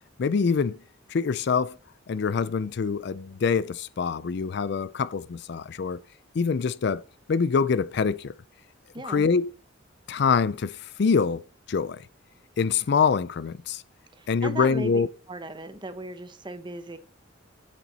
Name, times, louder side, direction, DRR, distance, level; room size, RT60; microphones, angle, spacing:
voice 1, 0.2-0.8 1.1-1.8 2.1-6.0 6.3-7.0 7.3-8.3 9.0-9.5 10.1-11.4 11.7-12.0 12.6-13.8 14.3-15.1, left 5 dB, 55° left, 0.4 m, -25 dB
voice 2, 8.9-9.3 14.1-15.0 15.3-17.0, right 2 dB, 25° right, 1.0 m, -37 dB
9.4 x 7.3 x 4.1 m
head